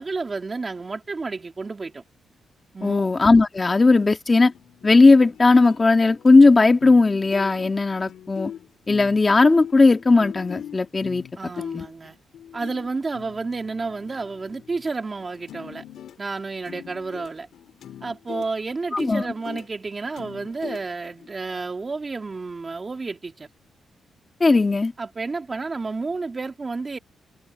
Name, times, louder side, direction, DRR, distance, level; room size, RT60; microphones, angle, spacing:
voice 1, 0.0-2.0 2.7-3.1 11.4-12.2 12.5-15.8 16.2-17.5 18.0-23.5 25.0-27.0, right 3 dB, 30° right, 3.2 m, -31 dB
voice 2, 2.8-4.5 4.8-8.5 8.9-11.3 11.7-11.8 18.9-19.2 24.4-24.9, left 3 dB, 25° left, 1.8 m, -17 dB
sound 1, 4.3-6.4 6.8-7.1 7.3-14.9 15.2-21.3, left 9 dB, 80° left, 4.0 m, -41 dB
cardioid pair, 120°, 0 cm